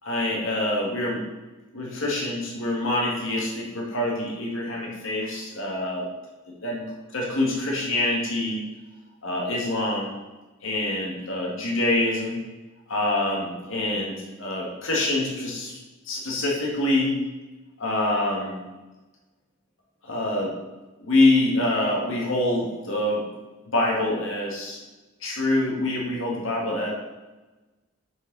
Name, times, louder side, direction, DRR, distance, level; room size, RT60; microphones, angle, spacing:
voice 1, 0.0-1.2 1.7-6.1 6.6-6.8 7.1-8.6 9.2-10.1 10.6-12.4 12.9-15.8 16.0-17.2 17.8-18.6 20.0-20.5 21.0-23.3 23.7-24.8 25.2-26.9, left 1 dB, 70° left, -2 dB, 2.2 m, -25 dB
7.3 x 6.7 x 4.2 m, 1.2 s
head